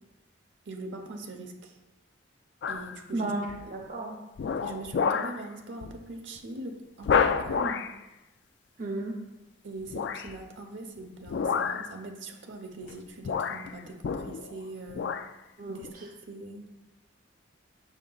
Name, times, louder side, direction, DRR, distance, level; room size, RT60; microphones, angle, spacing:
voice 1, 0.6-1.8 2.7-3.3 4.6-7.8 9.6-15.1 15.7-16.6, right 2 dB, 75° right, 4 dB, 0.9 m, -42 dB
sound 1, 2.6-3.0 3.5-3.8 4.4-5.4 5.8-6.0 6.4-6.5 7.0-8.0 9.9-10.4 11.3-11.9 12.8-13.0 13.2-14.6 14.9-15.3 15.8-15.9, left 6 dB, 60° left, 0.3 m, -29 dB
voice 2, 3.1-4.2 8.8-9.1 15.6-15.8, right 2 dB, 45° right, 0 dB, 0.6 m, -33 dB
7.2 x 6.5 x 2.3 m, 1.0 s
head